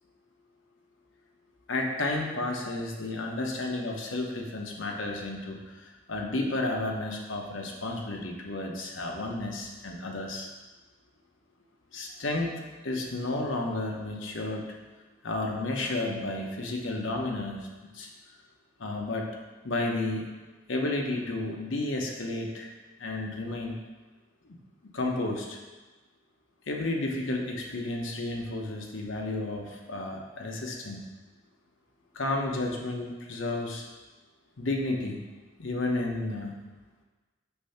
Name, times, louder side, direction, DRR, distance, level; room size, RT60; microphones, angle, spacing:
voice 1, 1.7-10.5 11.9-12.5 12.8-14.7 15.2-17.7 17.9-18.1 18.8-19.3 19.6-20.2 20.7-22.7 23.0-23.8 24.9-25.6 26.7-31.0 32.1-33.8 34.6-35.2 35.6-36.5, left 2 dB, 90° left, 0 dB, 0.9 m, -32 dB
6.8 x 2.7 x 5.6 m, 1.2 s
head